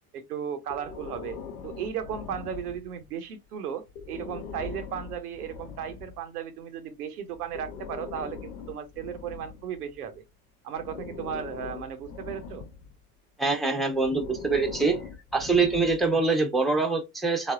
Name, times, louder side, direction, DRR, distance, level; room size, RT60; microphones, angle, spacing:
voice 1, 0.1-1.4 1.6-10.2 10.6-12.7, right 8 dB, 85° right, 0.7 m, -35 dB
Breathing, 0.7-3.1 3.9-6.2 7.3-10.2 10.8-13.0 13.9-16.2, left 6 dB, 65° left, 0.7 m, -41 dB
voice 2, 13.4-15.0 15.3-17.5, right 3 dB, ahead, 0.7 m, -24 dB
3.3 x 2.0 x 2.3 m
hypercardioid pair, 75°, 45 cm